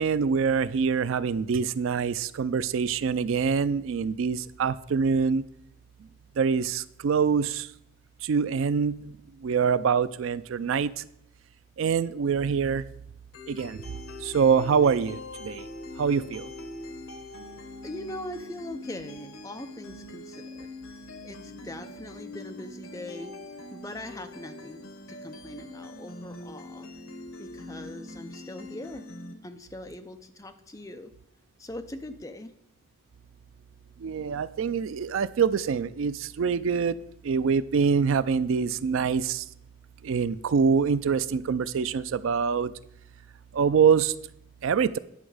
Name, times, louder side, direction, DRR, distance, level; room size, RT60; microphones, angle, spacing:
voice 1, 0.0-5.4 6.4-7.6 8.3-8.9 9.4-10.9 11.8-12.8 13.5-13.8 14.3-15.2 15.4-15.6 16.0-16.4 34.0-36.9 37.3-39.4 40.1-42.7 43.6-44.1 44.6-45.0, right 6 dB, 70° right, 16 dB, 0.4 m, -24 dB
sound 1, 13.3-29.3, left 2 dB, 80° left, 1.1 m, -43 dB
voice 2, 17.8-20.7 21.2-23.4 23.7-26.9 27.4-29.1 29.4-31.1 31.6-32.5, left 1 dB, 15° left, 7 dB, 0.5 m, -41 dB
9.9 x 6.2 x 4.9 m, 0.76 s
head